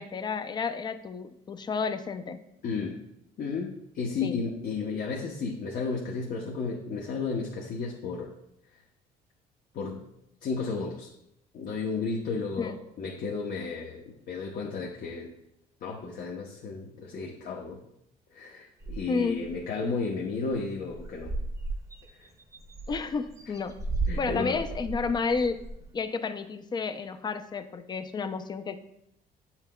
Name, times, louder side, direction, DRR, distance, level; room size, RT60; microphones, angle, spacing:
voice 1, 0.0-2.4 4.2-4.4 12.6-12.8 19.1-19.4 22.9-23.8 24.2-25.7 25.9-28.8, left 4 dB, 25° left, 10 dB, 0.5 m, -31 dB
voice 2, 2.6-3.0 3.4-8.3 9.7-10.0 10.4-11.1 11.5-15.3 15.8-17.8 18.3-21.3 22.2-22.3 24.1-24.6, left 4 dB, 55° left, -1 dB, 0.8 m, -33 dB
sound 1, 18.8-19.6 20.0-20.1 20.3-20.6 20.9-25.9, right 3 dB, 20° right, 0.8 m, -35 dB
8.0 x 5.7 x 2.2 m, 0.78 s
cardioid pair, 110°, 17 cm